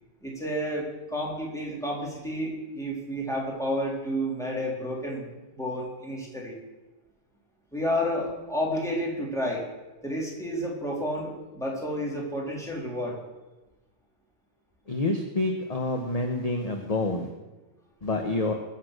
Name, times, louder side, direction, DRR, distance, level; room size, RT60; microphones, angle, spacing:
voice 1, 0.2-5.2 5.5-6.6 7.7-9.6 10.0-13.2, equal, 5° left, -4 dB, 3.7 m, -30 dB
voice 2, 14.9-17.3 18.0-18.5, left 2 dB, 35° left, 3 dB, 1.2 m, -27 dB
21.5 x 7.3 x 6.6 m, 1.1 s
omnidirectional pair, 1.1 m